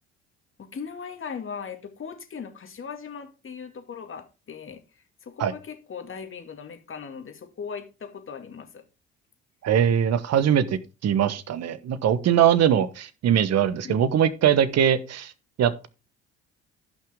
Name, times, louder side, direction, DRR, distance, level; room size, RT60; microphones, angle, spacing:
voice 1, 0.7-8.8 13.8-13.9, left 6 dB, 40° left, 2.3 m, -38 dB
voice 2, 9.6-10.7 11.0-15.3 15.6-15.9, right 9 dB, 50° right, 1.2 m, -21 dB
14.5 x 5.9 x 3.7 m
hypercardioid pair, 55°, 33 cm